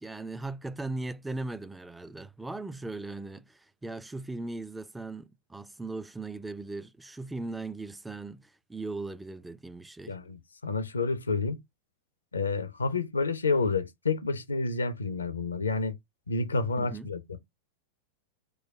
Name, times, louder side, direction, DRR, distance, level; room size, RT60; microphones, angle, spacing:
voice 1, 0.0-10.2 16.8-17.1, right 2 dB, 5° right, 0.4 m, -38 dB
voice 2, 10.1-11.6 12.3-16.0 16.3-17.4, left 3 dB, 75° left, 0.6 m, -29 dB
4.7 x 2.2 x 4.7 m
figure-of-eight pair, 90°, 0 cm